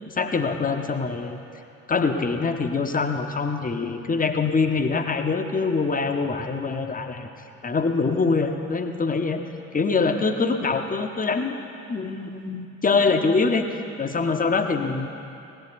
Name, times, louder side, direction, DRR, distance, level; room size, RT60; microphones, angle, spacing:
voice 1, 0.1-1.4 1.9-7.3 7.6-9.4 9.7-11.6 11.9-15.1, left 4 dB, 25° left, 6 dB, 1.1 m, -24 dB
17.5 x 11.5 x 4.1 m, 2.7 s
figure-of-eight pair, 40°, 36 cm